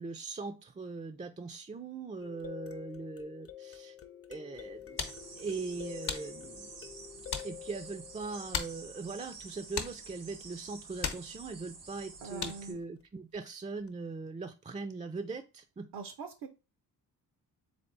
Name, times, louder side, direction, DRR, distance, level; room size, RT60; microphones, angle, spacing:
voice 1, 0.0-4.0 4.3-5.0 5.4-6.7 7.4-15.9, right 4 dB, 20° right, 6 dB, 0.3 m, -40 dB
sound 1, 2.2-9.1 13.3-13.4 13.9-14.0, left 10 dB, 35° left, 0.5 m, -48 dB
sound 2, 4.5-12.8, left 6 dB, 65° left, 0.9 m, -42 dB
sound 3, 5.0-12.7, right 4 dB, 85° right, 1.2 m, -50 dB
voice 2, 12.2-12.8 15.9-16.5, right 5 dB, 70° right, 7 dB, 0.6 m, -42 dB
3.6 x 3.4 x 3.8 m, 0.31 s
cardioid pair, 80°, 41 cm